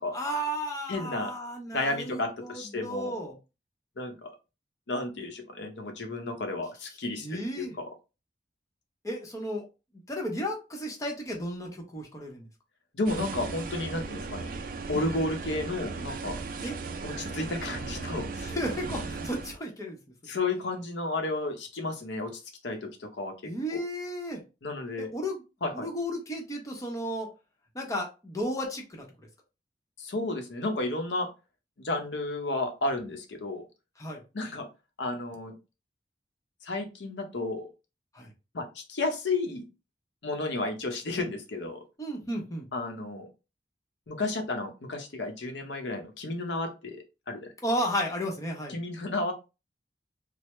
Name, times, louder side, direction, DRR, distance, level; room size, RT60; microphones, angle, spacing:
voice 1, 0.1-3.4 7.2-7.7 9.0-9.7 10.1-12.5 16.6-16.8 18.4-20.0 23.4-24.4 25.0-25.4 25.7-27.3 27.7-29.1 34.0-34.2 38.1-38.3 42.0-42.7 47.6-48.7, equal, 20° left, 0 dB, 0.8 m, -33 dB
voice 2, 0.9-1.3 1.7-3.2 4.0-4.3 4.9-7.8 12.9-14.5 14.9-16.4 17.0-18.5 20.2-22.3 22.6-23.8 24.6-25.1 25.6-25.9 30.0-31.3 31.8-33.7 34.3-34.7 35.0-35.5 36.6-37.7 38.5-39.7 40.2-41.8 42.7-43.3 44.1-47.0 47.3-47.5 48.7-49.3, left 2 dB, 85° left, 5 dB, 0.8 m, -32 dB
sound 1, 13.1-19.6, right 4 dB, 55° right, 0.4 m, -37 dB
3.3 x 2.0 x 3.0 m, 0.29 s
head